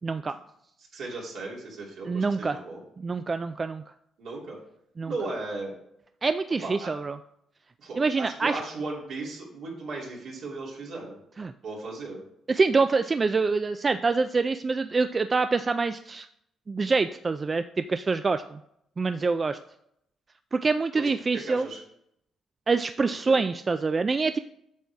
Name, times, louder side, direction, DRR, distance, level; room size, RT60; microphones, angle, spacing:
voice 1, 0.0-0.3 2.1-2.6 3.0-3.8 5.0-5.1 6.2-7.2 8.0-8.6 11.4-11.5 12.5-16.3 16.7-18.6 19.0-19.6 20.5-21.7 22.7-24.4, right 4 dB, 30° right, 10 dB, 0.3 m, -25 dB
voice 2, 0.9-2.8 4.2-4.6 5.0-5.7 6.6-6.9 7.8-11.2 11.6-12.2 21.0-21.8 23.2-23.4, right 3 dB, 75° right, -3 dB, 2.8 m, -36 dB
8.4 x 6.3 x 3.5 m, 0.75 s
cardioid pair, 90°, 0 cm